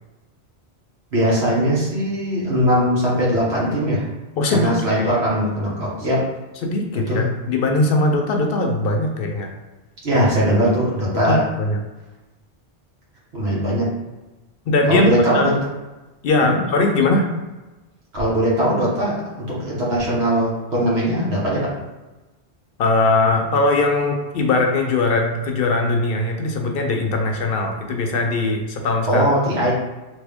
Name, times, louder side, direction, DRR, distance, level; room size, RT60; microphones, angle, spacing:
voice 1, 1.1-4.1 4.5-6.2 7.1-7.3 10.0-11.4 13.3-13.8 14.9-15.5 16.4-16.5 18.1-19.1 19.6-21.6 29.1-29.7, equal, 75° right, -6 dB, 1.4 m, -20 dB
voice 2, 4.4-4.7 6.6-9.5 11.2-11.8 14.7-15.5 16.2-17.2 22.8-29.2, left 2 dB, 65° left, 3 dB, 0.7 m, -20 dB
3.5 x 2.7 x 3.4 m, 1.1 s
omnidirectional pair, 1.1 m